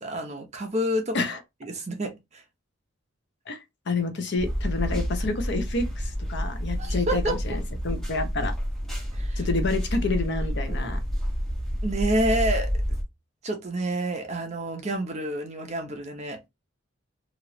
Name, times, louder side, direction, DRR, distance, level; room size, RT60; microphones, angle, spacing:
voice 1, 0.0-1.2 1.6-2.4 6.8-7.4 9.1-9.4 10.7-10.9 11.8-12.7 13.4-16.4, right 1 dB, 35° right, 0.7 m, -28 dB
voice 2, 3.5-8.5 9.4-11.0, left 3 dB, 60° left, 0.7 m, -29 dB
sound 1, 4.4-13.0, equal, ahead, 1.0 m, -29 dB
3.1 x 2.5 x 2.9 m
head